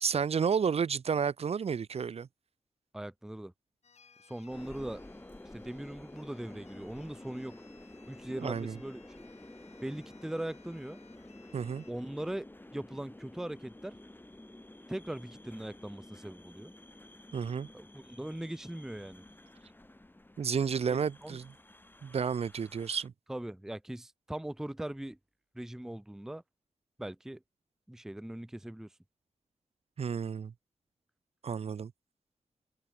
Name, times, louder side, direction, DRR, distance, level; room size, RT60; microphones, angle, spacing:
voice 1, 0.0-2.3 8.4-8.8 11.5-11.8 17.3-17.7 20.4-21.5 22.0-23.1 30.0-30.5 31.4-31.9, right 6 dB, 60° right, 0.6 m, -31 dB
voice 2, 2.9-3.5 4.3-5.0 5.5-7.6 8.1-9.0 9.8-11.0 11.9-14.0 14.9-16.7 17.7-19.2 20.9-21.4 23.3-25.2 25.5-26.4 27.0-27.4 27.9-28.9, right 1 dB, 5° right, 0.4 m, -40 dB
sound 1, 3.8-11.9, left 6 dB, 70° left, 2.1 m, -62 dB
sound 2, 4.5-23.1, left 1 dB, 15° left, 5.3 m, -51 dB
cardioid pair, 65°, 12 cm